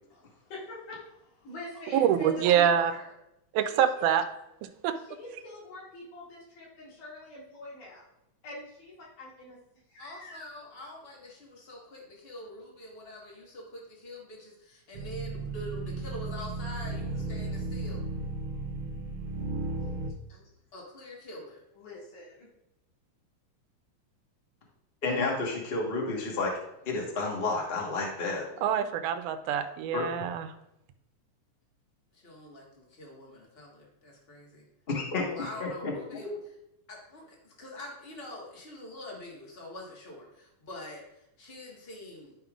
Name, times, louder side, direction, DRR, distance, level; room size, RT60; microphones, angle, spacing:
voice 1, 0.1-3.1 3.7-4.1 5.0-8.1 8.4-9.6 9.9-10.5 20.3-20.5 21.7-22.5, left 2 dB, 90° left, -6 dB, 3.7 m, -45 dB
voice 2, 1.9-2.9 3.5-4.2 4.6-5.0 28.6-30.5, right 9 dB, 85° right, 9 dB, 2.1 m, -25 dB
voice 3, 10.0-18.0 20.7-21.6 32.1-34.6 35.3-36.5 36.9-42.4, left 1 dB, 40° left, -2 dB, 0.8 m, -45 dB
sound 1, 14.9-20.1, right 2 dB, 70° right, 1.6 m, -35 dB
voice 4, 25.0-26.5 26.8-28.5 29.9-30.0 34.9-35.3 35.6-35.9 36.2-36.4, left 3 dB, 70° left, -1 dB, 0.5 m, -30 dB
11.5 x 5.2 x 2.4 m, 0.85 s
omnidirectional pair, 3.5 m